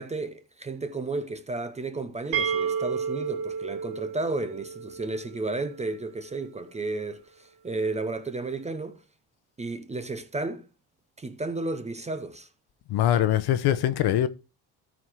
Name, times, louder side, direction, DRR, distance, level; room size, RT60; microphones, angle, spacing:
voice 1, 0.0-9.0 9.6-10.7 11.2-12.5, right 3 dB, 15° right, 0.7 m, -33 dB
sound 1, 2.3-6.0, right 6 dB, 75° right, 3.1 m, -32 dB
voice 2, 12.9-14.3, left 12 dB, 55° left, 0.9 m, -22 dB
13.5 x 4.8 x 4.6 m
cardioid pair, 155°, 48 cm